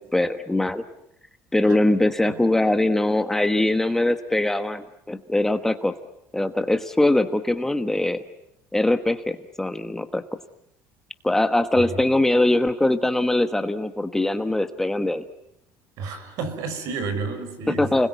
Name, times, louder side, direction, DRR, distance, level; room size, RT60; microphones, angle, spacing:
voice 1, 0.1-0.8 1.5-5.9 6.3-8.2 8.7-10.2 11.2-15.2 17.8-18.1, left 1 dB, 5° left, 9 dB, 1.1 m, -22 dB
voice 2, 16.0-18.0, right 4 dB, 70° right, 10 dB, 5.6 m, -31 dB
30.0 x 21.0 x 9.4 m, 0.82 s
cardioid pair, 145°, 6 cm